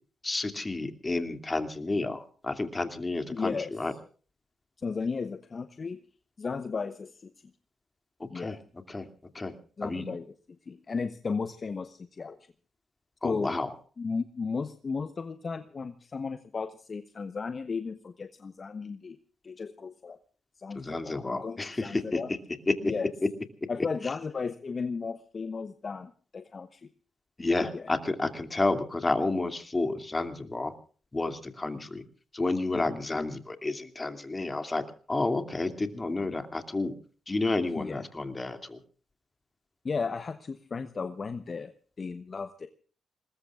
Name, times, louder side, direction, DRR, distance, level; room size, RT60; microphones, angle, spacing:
voice 1, 0.2-3.9 8.2-8.6 8.9-9.1 9.3-9.5 9.8-10.1 13.2-13.7 20.7-22.4 22.7-22.8 27.4-30.7 31.1-32.0 32.3-36.9 37.3-38.8, left 2 dB, 30° left, 7 dB, 2.6 m, -30 dB
voice 2, 3.3-3.7 4.8-6.0 6.4-7.3 8.3-8.6 9.8-10.2 10.7-12.4 13.2-13.5 14.0-19.2 19.4-20.2 20.6-22.3 22.8-23.1 23.7-26.9 27.7-27.8 32.7-32.9 37.8-38.0 39.8-42.7, left 5 dB, 45° left, 10 dB, 1.0 m, -35 dB
26.5 x 21.0 x 2.5 m, 0.40 s
hypercardioid pair, 45°, 0 cm